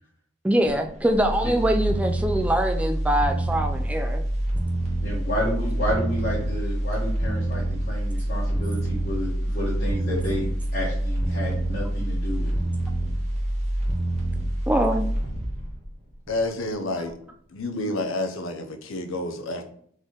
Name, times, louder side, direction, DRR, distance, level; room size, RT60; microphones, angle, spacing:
voice 1, 0.4-4.2 14.7-15.1, right 1 dB, 5° right, 0.3 m, -23 dB
sound 1, 0.6-16.7 17.1-17.2, right 1 dB, 30° right, 1.0 m, -27 dB
voice 2, 5.0-12.5, equal, 50° left, 1.2 m, -30 dB
voice 3, 16.3-17.1 17.5-19.6, left 2 dB, 75° left, 0.6 m, -29 dB
4.0 x 3.8 x 3.2 m
head